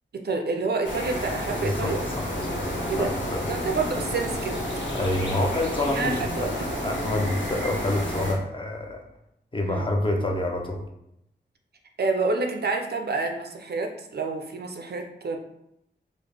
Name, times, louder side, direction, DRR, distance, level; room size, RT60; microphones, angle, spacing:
voice 1, 0.1-2.0 2.9-3.1 3.5-4.6 6.0-6.5 9.6-9.9 12.0-15.4, right 3 dB, 60° right, 3 dB, 0.4 m, -28 dB
sound 1, 0.8-8.3, equal, 80° left, 1.1 m, -30 dB
voice 2, 1.6-3.4 4.9-6.5 6.8-9.0 9.5-10.9, left 1 dB, 25° left, 1 dB, 0.5 m, -28 dB
3.7 x 2.0 x 3.2 m, 0.81 s
wide cardioid pair, 80°, 19 cm